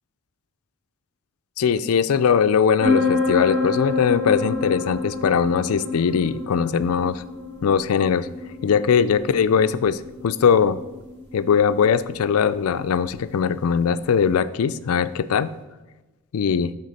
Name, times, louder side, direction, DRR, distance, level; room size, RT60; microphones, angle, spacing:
voice 1, 1.6-7.2 7.6-8.3 8.6-10.8 11.3-15.5 16.3-16.7, left 7 dB, 75° left, 15 dB, 0.4 m, -20 dB
sound 1, 2.8-14.3, left 3 dB, 50° right, 1.6 m, -29 dB
11.5 x 4.0 x 4.1 m, 1.1 s
head